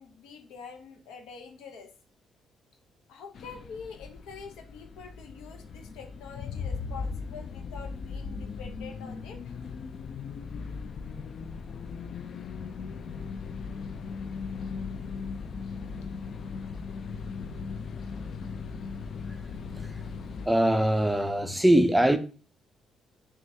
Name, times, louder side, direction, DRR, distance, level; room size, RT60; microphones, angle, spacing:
voice 1, 0.0-1.9 3.1-9.6, left 5 dB, 90° left, 0.7 m, -45 dB
sound 1, 3.3-20.5, left 5 dB, 55° left, 0.3 m, -38 dB
voice 2, 20.5-22.2, right 1 dB, 5° right, 0.4 m, -22 dB
6.0 x 2.4 x 2.7 m
cardioid pair, 90°, 0 cm